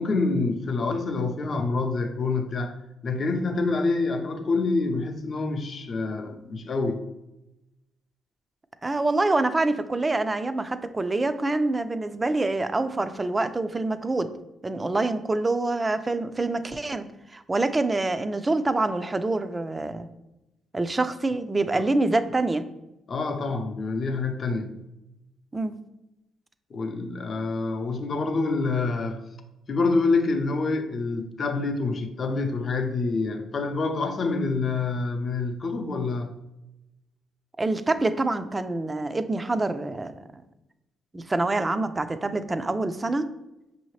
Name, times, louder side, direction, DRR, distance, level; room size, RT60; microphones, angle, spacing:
voice 1, 0.0-7.0 23.1-24.7 26.7-29.2 29.7-36.3, left 3 dB, 45° left, 0.6 m, -27 dB
voice 2, 8.8-14.3 14.6-20.1 20.7-22.7 25.5-25.8 37.6-40.4 41.1-43.3, right 2 dB, 20° right, 0.4 m, -26 dB
5.6 x 2.7 x 3.2 m
cardioid pair, 90°, 0 cm